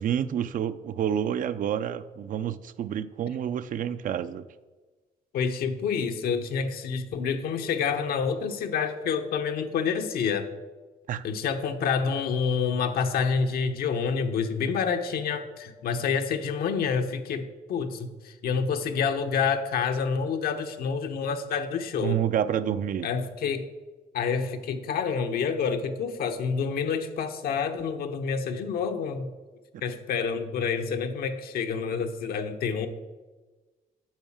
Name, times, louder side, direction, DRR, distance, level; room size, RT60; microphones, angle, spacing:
voice 1, 0.0-4.4 11.1-11.2 22.0-23.1, right 9 dB, 60° right, 12 dB, 0.6 m, -28 dB
voice 2, 5.3-10.5 11.2-22.2 23.0-23.6 24.1-29.3 29.8-32.9, left 6 dB, 75° left, 7 dB, 1.1 m, -28 dB
9.0 x 6.3 x 7.2 m, 1.3 s
cardioid pair, 105°, 16 cm